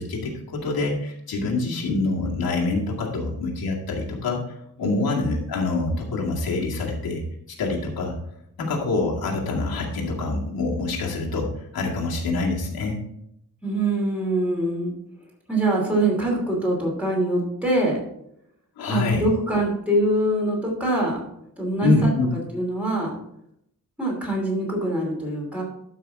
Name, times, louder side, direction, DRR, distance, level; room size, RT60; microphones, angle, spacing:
voice 1, 0.0-4.4 4.8-7.2 7.6-8.1 8.6-13.0 18.8-19.2 21.8-22.3, left 3 dB, 90° left, -3 dB, 2.2 m, -25 dB
voice 2, 13.6-14.9 15.5-18.0 18.9-21.2 21.6-22.1 22.5-23.1 24.0-25.6, right 1 dB, 5° right, -3 dB, 2.7 m, -24 dB
12.5 x 5.6 x 3.6 m, 0.77 s
wide cardioid pair, 175°, 35 cm